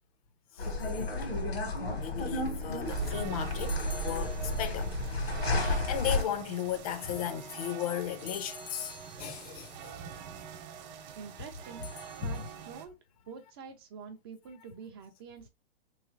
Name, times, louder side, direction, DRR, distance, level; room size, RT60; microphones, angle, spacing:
sound 1, 0.6-6.2, left 2 dB, 80° left, 1.6 m, -32 dB
sound 2, 0.8-1.5 3.6-5.1 8.2-9.7 11.8-12.7, left 7 dB, 65° left, 0.8 m, -49 dB
voice 1, 2.0-4.9 5.5-10.0 12.2-12.4, left 9 dB, 40° left, 0.5 m, -36 dB
sound 3, 2.8-12.9, right 7 dB, 50° right, 0.8 m, -42 dB
voice 2, 11.1-11.9 12.2-13.0 13.3-15.5, right 6 dB, 25° right, 0.3 m, -46 dB
3.1 x 3.1 x 2.4 m
hypercardioid pair, 135°, 30 cm